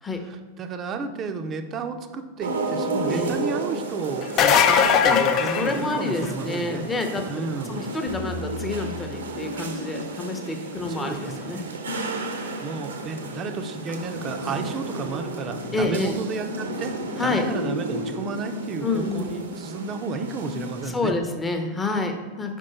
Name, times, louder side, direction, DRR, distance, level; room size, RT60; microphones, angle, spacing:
voice 1, 0.3-6.9 7.3-7.8 10.7-11.7 12.6-16.9 17.2-21.1, right 4 dB, 30° right, 7 dB, 0.5 m, -32 dB
sound 1, 2.4-20.9, right 2 dB, 70° right, 0.7 m, -33 dB
voice 2, 3.0-3.3 5.1-5.2 5.5-11.6 15.7-16.2 17.2-17.5 18.8-19.4 20.8-22.6, left 3 dB, 15° left, 4 dB, 0.8 m, -28 dB
sound 2, 4.2-6.4 12.0-12.1 13.9-14.0, left 7 dB, 35° left, 0.4 m, -20 dB
sound 3, 8.1-11.3, left 3 dB, 75° left, 0.9 m, -39 dB
5.4 x 4.9 x 4.2 m, 1.4 s
figure-of-eight pair, 90°, 0 cm